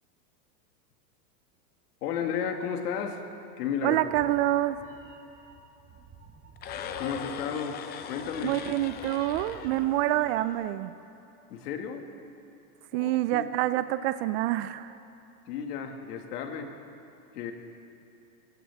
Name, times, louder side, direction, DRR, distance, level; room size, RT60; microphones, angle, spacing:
voice 1, 2.0-3.2 3.6-4.0 7.0-7.8 8.1-8.6 11.5-12.0 12.9-13.5 15.5-16.7 17.3-17.5, left 7 dB, 75° left, 4 dB, 2.0 m, -33 dB
Meow, 3.8-10.5, right 4 dB, 30° right, 1.6 m, -51 dB
voice 2, 3.8-4.8 8.4-10.9 12.9-14.9, right 14 dB, 45° right, 13 dB, 0.4 m, -27 dB
sound 1, 6.6-10.7, left 8 dB, 20° left, 0.5 m, -40 dB
22.0 x 17.0 x 3.5 m, 2.8 s
supercardioid pair, 140°, 47 cm